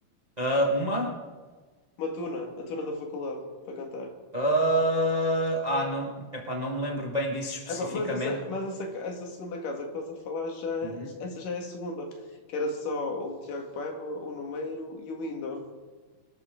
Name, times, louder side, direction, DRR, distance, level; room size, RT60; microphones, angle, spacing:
voice 1, 0.4-1.1 4.3-7.8 8.1-8.3 11.0-11.1, right 1 dB, 55° right, 0 dB, 0.4 m, -27 dB
voice 2, 2.0-4.1 7.7-12.1 12.5-15.6, left 2 dB, 75° left, 2 dB, 3.5 m, -34 dB
25.0 x 12.5 x 3.8 m, 1.4 s
omnidirectional pair, 3.9 m